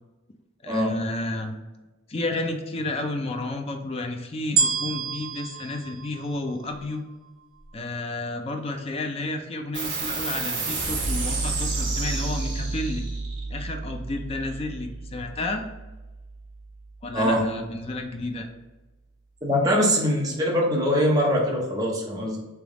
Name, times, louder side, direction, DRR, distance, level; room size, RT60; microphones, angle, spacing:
voice 1, 0.6-1.6 2.1-7.0 7.7-13.1 13.5-15.6 17.0-18.5, left 2 dB, 30° left, 4 dB, 0.4 m, -31 dB
sound 1, 4.6-7.0 7.6-7.7, right 6 dB, 85° right, 0.6 m, -27 dB
sound 2, 9.7-16.6, right 3 dB, 55° right, 1.2 m, -30 dB
voice 2, 19.4-22.4, equal, 15° right, -2 dB, 0.8 m, -22 dB
3.4 x 3.0 x 3.6 m, 1.1 s
head